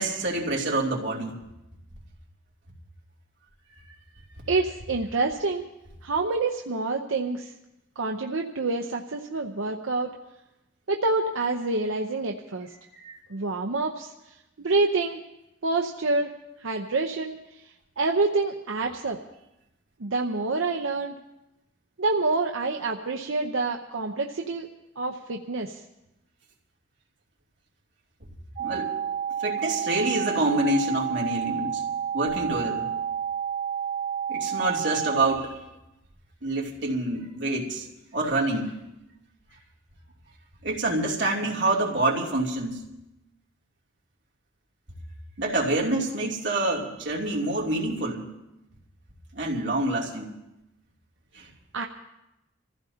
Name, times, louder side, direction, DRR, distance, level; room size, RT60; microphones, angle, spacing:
voice 1, 0.0-1.4 13.0-13.2 28.6-28.9 29.4-31.8 32.1-32.9 34.3-35.6 36.4-37.9 38.1-38.8 40.6-42.8 45.4-48.2 49.3-50.3 51.3-51.5, right 2 dB, 65° right, -3 dB, 2.9 m, -27 dB
voice 2, 4.5-5.7 6.0-7.5 8.0-10.1 10.9-12.7 13.3-14.1 14.6-15.2 15.6-16.3 16.6-17.6 18.0-19.2 20.0-21.2 22.0-24.7 25.0-25.8 51.7-51.8, right 3 dB, 90° right, 2 dB, 0.8 m, -27 dB
sound 1, 28.6-35.4, right 8 dB, 40° right, 2.1 m, -30 dB
26.5 x 15.0 x 2.8 m, 0.92 s
head